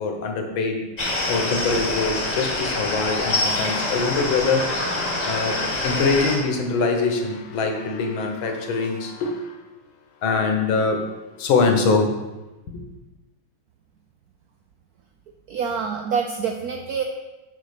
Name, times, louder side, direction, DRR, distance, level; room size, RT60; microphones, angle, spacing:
voice 1, 0.0-4.8 5.2-9.6 10.2-11.0 11.4-12.2 12.7-12.8, left 4 dB, 75° left, 3 dB, 1.8 m, -23 dB
sound 1, 1.0-6.4, left 2 dB, 25° left, 1.2 m, -25 dB
voice 2, 15.5-17.0, right 6 dB, 80° right, 4 dB, 0.8 m, -26 dB
7.3 x 4.2 x 6.6 m, 1.1 s
omnidirectional pair, 2.2 m